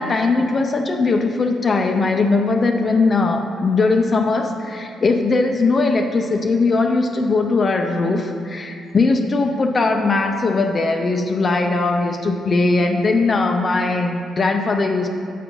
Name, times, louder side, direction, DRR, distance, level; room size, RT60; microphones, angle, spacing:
voice 1, 0.0-15.1, left 3 dB, 40° left, 3 dB, 0.5 m, -19 dB
8.2 x 3.8 x 5.8 m, 2.4 s
cardioid pair, 90°, 0 cm